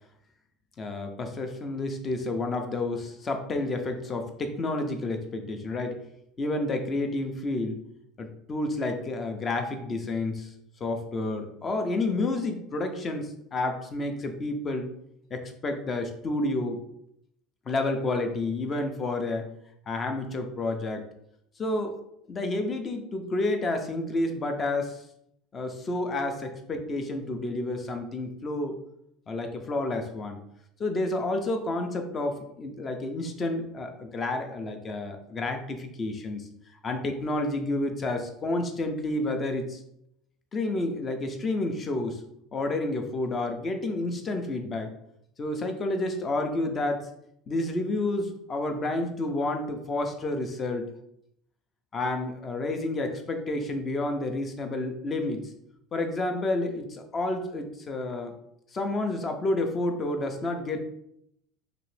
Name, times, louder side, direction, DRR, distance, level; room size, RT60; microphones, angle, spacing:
voice 1, 0.8-6.0 6.4-7.8 8.2-10.5 10.8-14.9 15.3-16.8 17.7-19.5 19.9-21.0 21.6-22.0 22.3-25.0 25.5-28.8 29.3-30.4 30.8-36.5 36.8-39.8 40.5-42.2 42.5-44.9 45.4-47.1 47.5-50.9 51.9-55.5 55.9-58.3 58.7-60.8, left 2 dB, 20° left, 5 dB, 0.4 m, -30 dB
2.9 x 2.9 x 3.1 m, 0.75 s
cardioid pair, 165°, 0 cm